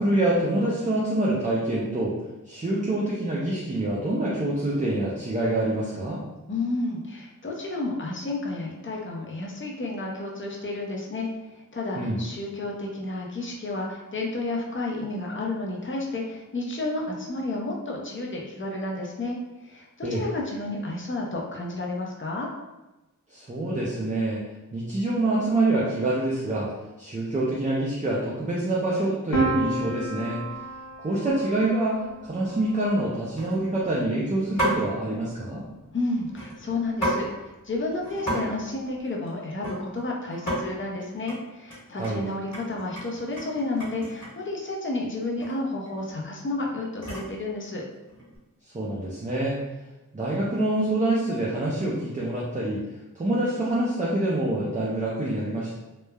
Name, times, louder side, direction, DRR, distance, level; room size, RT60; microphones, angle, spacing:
voice 1, 0.0-2.1 2.5-6.2 12.0-12.2 20.0-20.2 23.3-24.4 24.7-26.7 27.0-30.4 31.0-35.6 42.0-42.2 48.7-49.6 50.1-52.8 53.1-55.7, right 1 dB, 25° right, -5 dB, 0.4 m, -26 dB
voice 2, 6.5-11.3 11.5-22.5 35.9-47.8, left 2 dB, 35° left, -1 dB, 0.5 m, -31 dB
Piano, 29.3-35.1, right 2 dB, 80° left, 0.6 m, -33 dB
sound 1, 30.4-30.7 31.1-31.4 31.8-31.9 32.2-32.6 33.4-33.9 34.6-34.9 36.3-37.2 37.6-37.7 37.9-38.4 38.6-40.0 40.3-40.6 41.0-41.4 41.7-44.5 45.4-45.5 45.8-47.4 48.0-48.4, right 1 dB, 55° left, 1.3 m, -32 dB
3.1 x 2.0 x 2.2 m, 1.0 s
wide cardioid pair, 65°, 33 cm